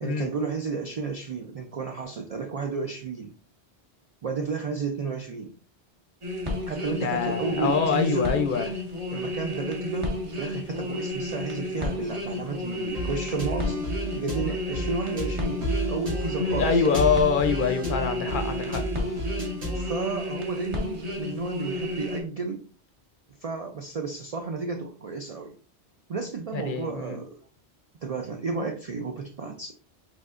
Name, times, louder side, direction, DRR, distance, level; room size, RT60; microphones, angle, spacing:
voice 1, 0.0-3.3 4.2-5.5 6.7-8.4 9.1-13.8 14.2-16.9 19.7-22.6 23.4-25.6 26.1-27.4 28.0-29.7, right 4 dB, 60° right, 0.4 m, -32 dB
sound 1, 6.2-22.2, left 2 dB, 30° right, 0.9 m, -32 dB
voice 2, 7.0-8.6 16.4-18.8 26.5-27.1, left 6 dB, 60° left, 0.6 m, -25 dB
sound 2, 12.9-19.9, right 1 dB, 80° right, 1.9 m, -31 dB
5.1 x 3.5 x 2.4 m
omnidirectional pair, 1.1 m